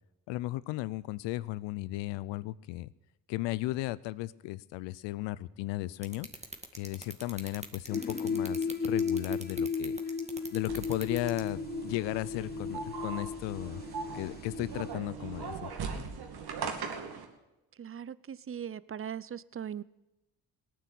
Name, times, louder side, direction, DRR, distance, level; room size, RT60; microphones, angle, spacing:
voice 1, 0.3-2.9 3.3-6.3 6.8-10.0 10.5-13.8 14.1-15.7, left 17 dB, 80° left, 0.6 m, -35 dB
sound 1, 6.0-11.5, right 2 dB, 15° right, 2.2 m, -42 dB
sound 2, 7.9-14.9, left 5 dB, 25° left, 0.8 m, -35 dB
sound 3, 10.7-17.2, right 6 dB, 60° right, 2.5 m, -40 dB
voice 2, 17.8-19.8, right 8 dB, 30° right, 0.6 m, -39 dB
18.0 x 9.4 x 8.4 m
hypercardioid pair, 50°, 43 cm